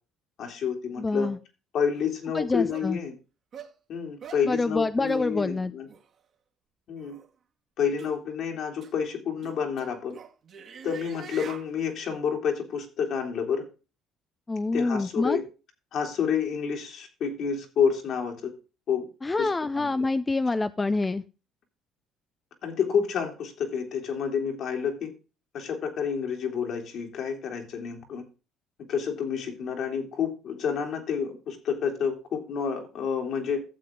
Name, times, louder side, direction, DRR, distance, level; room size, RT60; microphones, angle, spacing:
voice 1, 0.4-1.3 1.7-3.1 3.9-5.9 6.9-7.2 7.8-10.2 10.8-13.6 14.7-15.4 15.9-18.5 18.9-19.1 19.4-19.5 19.8-20.1 22.6-25.1 25.5-28.2 28.9-33.6, left 7 dB, 60° left, 3 dB, 2.9 m, -29 dB
voice 2, 1.0-1.4 2.3-3.0 4.5-5.7 14.5-15.4 19.2-21.2, left 3 dB, 20° left, 12 dB, 0.5 m, -26 dB
sound 1, 2.0-2.1 2.7-2.9 3.5-3.7 4.2-4.5 5.0-5.3 5.9-6.0 7.0-7.3 8.0-8.2 8.8-8.9 9.4-11.7, right 6 dB, 50° right, 1.9 m, -44 dB
12.0 x 7.6 x 3.7 m, 0.32 s
cardioid pair, 95°, 0 cm